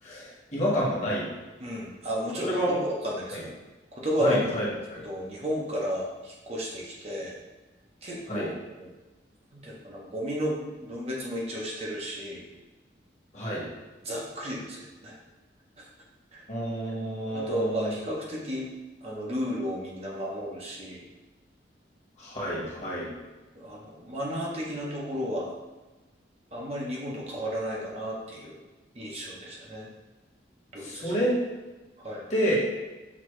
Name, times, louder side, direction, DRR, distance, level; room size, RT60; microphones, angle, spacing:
voice 1, 0.0-1.3 2.4-2.8 3.3-3.4 4.2-5.0 8.3-8.5 13.3-13.6 16.5-17.9 22.2-23.1 30.8-31.3 32.3-32.5, equal, 40° left, -5 dB, 1.3 m, -29 dB
voice 2, 1.6-2.8 3.0-3.5 3.9-4.4 5.0-7.3 8.0-8.5 8.8-8.9 9.5-12.4 14.0-14.8 15.0-15.2 15.8-15.9 16.3-16.4 17.3-18.7 19.0-21.0 23.5-25.5 26.5-28.6 28.9-29.9 30.7-31.1 32.0-32.3, equal, 35° right, -4 dB, 0.7 m, -33 dB
6.0 x 2.8 x 3.1 m, 1.2 s
head